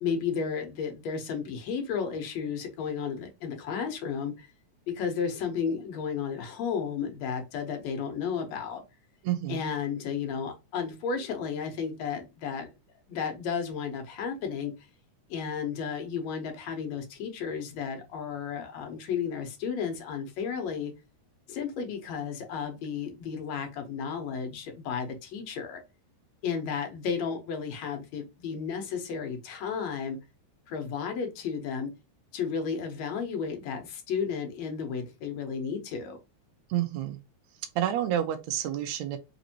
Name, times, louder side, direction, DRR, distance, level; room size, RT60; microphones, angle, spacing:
voice 1, 0.0-4.5 4.9-8.8 9.5-12.7 13.1-14.7 15.3-20.9 21.5-25.8 26.4-30.2 30.7-31.9 32.3-36.2, left 6 dB, 70° left, 1.9 m, -33 dB
voice 2, 9.2-9.6 36.7-37.2 37.7-39.2, right 11 dB, 85° right, 1.6 m, -29 dB
5.1 x 2.6 x 2.8 m
omnidirectional pair, 3.7 m